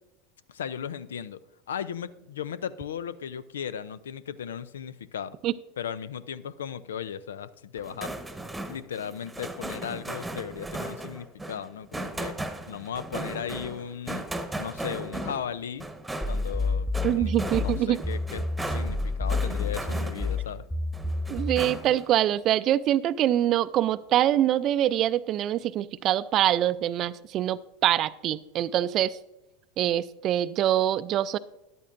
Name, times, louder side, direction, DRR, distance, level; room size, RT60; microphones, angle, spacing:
voice 1, 0.5-1.4 1.7-5.4 5.8-8.1 8.7-14.3 14.6-15.9 16.3-20.6, left 8 dB, 85° left, 17 dB, 0.4 m, -36 dB
sound 1, 7.8-20.5 20.9-22.1, right 1 dB, 5° right, 1.1 m, -37 dB
sound 2, 16.2-21.7, left 3 dB, 10° left, 1.6 m, -29 dB
voice 2, 17.0-18.0 21.3-29.2 29.8-31.4, right 12 dB, 45° right, 16 dB, 0.4 m, -24 dB
13.5 x 11.0 x 2.6 m, 0.92 s
hypercardioid pair, 90°, 0 cm